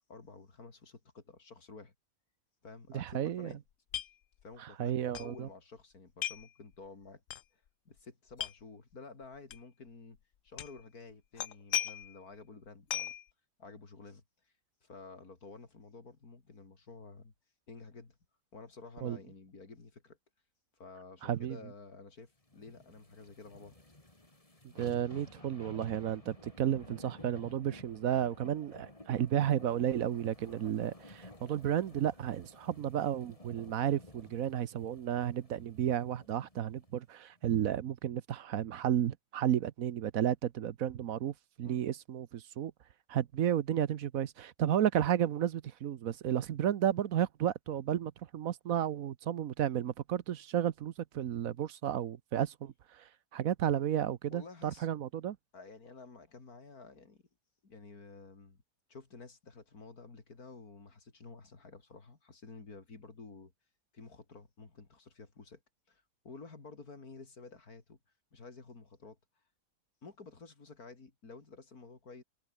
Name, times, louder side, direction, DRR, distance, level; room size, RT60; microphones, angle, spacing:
voice 1, 0.1-1.9 2.6-3.6 4.4-7.2 7.5-10.2 10.4-13.1 13.6-14.5 14.8-17.3 17.7-18.2 18.5-20.2 20.7-23.7 41.6-41.9 54.3-54.9 55.5-57.2 57.6-58.6 58.9-63.5 63.9-65.6 65.9-68.0 68.3-69.4 70.0-72.2, left 4 dB, 90° left, 3.8 m, -51 dB
voice 2, 2.9-3.5 4.6-5.5 19.0-19.2 21.2-21.6 24.8-42.7 43.1-55.4, right 10 dB, 70° right, 1.3 m, -32 dB
sound 1, 3.9-4.1 4.4-4.5 5.1-5.3 6.2-6.5 7.3-7.4 8.3-8.5 9.5-9.6 10.6-10.8 11.4-12.2 12.9-13.2, left 11 dB, 65° left, 1.2 m, -36 dB
sound 2, 22.5-36.9 37.4-37.5, left 1 dB, 25° left, 3.6 m, -54 dB
omnidirectional pair, 1.5 m